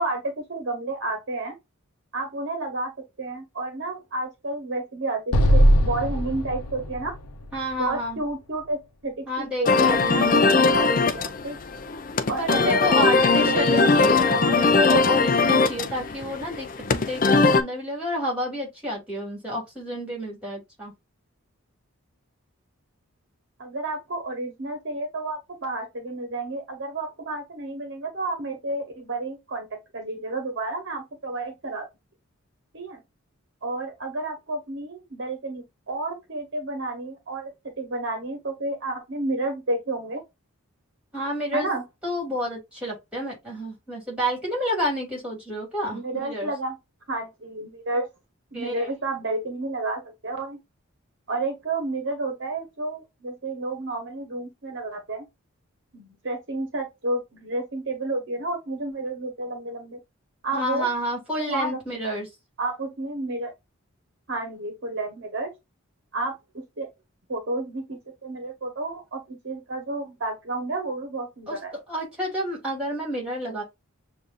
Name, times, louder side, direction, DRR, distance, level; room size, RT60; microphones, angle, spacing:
voice 1, 0.0-1.5 2.1-2.9 3.2-7.1 7.8-8.8 9.0-11.6 12.3-14.6 23.6-29.7 29.9-31.9 32.7-33.0 33.6-40.2 41.5-41.8 45.9-46.8 47.1-48.1 48.5-50.6 51.3-55.2 55.9-60.0 60.4-60.9 61.4-61.8 62.6-63.5 64.3-65.5 66.1-66.3 66.8-66.9 67.3-71.8, right 2 dB, 55° right, 0.9 m, -31 dB
Explosion, 5.3-8.6, equal, 90° left, 0.7 m, -21 dB
voice 2, 7.5-8.2 9.3-10.5 12.4-20.9 41.1-41.7 42.0-46.5 48.5-48.9 60.5-62.3 71.5-71.6 71.9-73.6, equal, 5° right, 2.5 m, -30 dB
sound 1, 9.7-17.6, left 4 dB, 40° left, 0.4 m, -20 dB
6.9 x 2.5 x 2.5 m
head